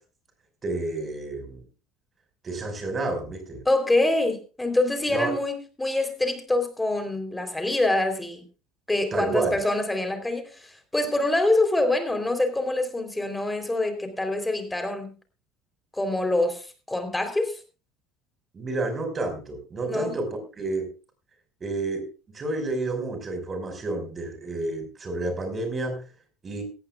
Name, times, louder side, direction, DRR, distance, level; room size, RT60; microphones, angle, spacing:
voice 1, 0.6-1.6 2.4-3.6 5.1-5.3 9.1-9.6 18.5-20.3 20.6-20.9 21.6-22.1 22.3-26.0 26.4-26.6, right 2 dB, 35° right, 6 dB, 5.3 m, -30 dB
voice 2, 3.7-8.4 8.9-15.1 15.9-17.6 19.8-20.2, left 2 dB, 10° left, 7 dB, 3.6 m, -25 dB
18.0 x 14.5 x 2.4 m, 0.33 s
hypercardioid pair, 70°, 0 cm